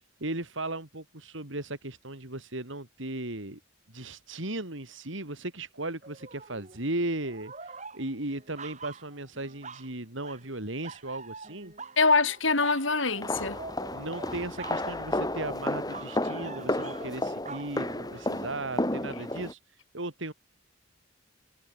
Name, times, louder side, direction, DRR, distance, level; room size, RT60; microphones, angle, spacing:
voice 1, 0.0-3.6 3.9-11.7 13.9-19.6 19.9-20.3, right 2 dB, 70° right, 4.1 m, -36 dB
sound 1, 6.0-6.8 7.2-9.9 10.2-10.6 10.8-18.8 19.3-19.4, right 4 dB, 35° right, 6.5 m, -45 dB
voice 2, 12.0-13.6, left 4 dB, 75° left, 7.0 m, -24 dB
sound 2, 13.2-19.5, left 1 dB, 20° left, 5.5 m, -32 dB
head